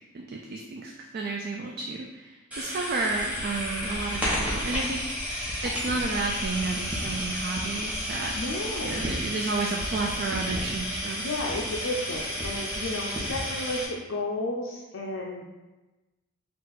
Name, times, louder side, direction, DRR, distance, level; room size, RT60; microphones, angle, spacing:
voice 1, 0.1-5.1 5.6-8.3 8.8-11.2, right 3 dB, 50° right, 0 dB, 0.3 m, -31 dB
sound 1, 2.5-13.8, equal, 5° right, 0.9 m, -31 dB
voice 2, 8.3-9.0 11.2-15.4, left 2 dB, 65° left, -2 dB, 0.5 m, -32 dB
4.4 x 2.4 x 3.9 m, 1.1 s
head